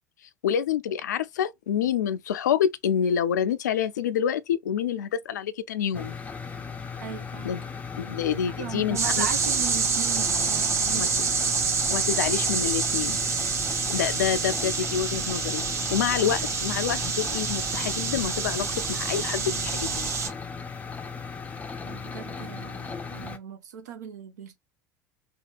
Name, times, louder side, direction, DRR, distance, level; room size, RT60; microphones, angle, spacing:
voice 1, 0.4-6.1 7.4-7.6 8.0-9.3 10.9-11.2 11.9-13.2 13.9-15.6 15.9-20.1, left 9 dB, 70° left, 0.4 m, -27 dB
sound 1, 5.9-23.4, left 5 dB, 15° left, 0.5 m, -37 dB
voice 2, 7.0-7.5 8.5-11.5 21.8-24.6, right 9 dB, 70° right, 0.7 m, -38 dB
sound 2, 9.0-20.3, right 5 dB, 30° right, 0.7 m, -27 dB
3.0 x 2.2 x 3.1 m
figure-of-eight pair, 70°, 10 cm